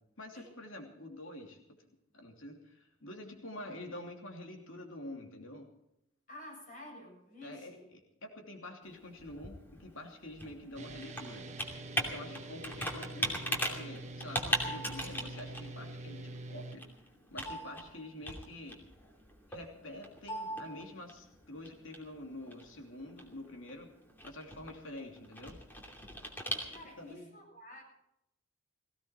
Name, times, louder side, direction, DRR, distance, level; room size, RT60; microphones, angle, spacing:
voice 1, 0.2-1.6 2.1-5.7 7.4-11.5 12.0-16.9 17.3-18.8 19.5-23.9 24.2-25.6 27.0-27.3, left 1 dB, 70° left, 3 dB, 2.9 m, -47 dB
voice 2, 6.3-7.9 12.1-12.4 26.7-27.8, left 1 dB, 40° left, 0 dB, 7.9 m, -50 dB
Computer keyboard, 8.8-27.1, equal, 10° left, 2.7 m, -40 dB
sound 1, 10.8-16.8, right 2 dB, 35° right, 1.3 m, -45 dB
18.0 x 16.5 x 4.4 m, 0.82 s
head